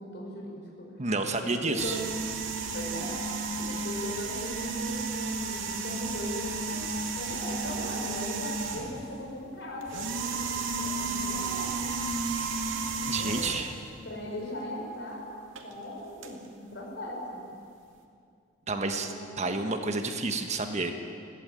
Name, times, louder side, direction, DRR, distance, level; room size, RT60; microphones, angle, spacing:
voice 1, 0.0-0.9 1.4-2.1 2.7-3.2 3.7-6.9 7.2-11.9 13.2-13.6 14.0-15.3 15.6-17.4 18.7-19.6, equal, 60° left, -1 dB, 5.9 m, -39 dB
voice 2, 1.0-2.0 13.0-13.7 18.7-21.0, right 3 dB, 35° right, 6 dB, 1.4 m, -30 dB
sound 1, 1.8-9.1 9.8-13.8 15.6-15.7 16.2-16.3, right 4 dB, 85° right, 2.3 m, -33 dB
21.0 x 16.0 x 9.2 m, 2.4 s
head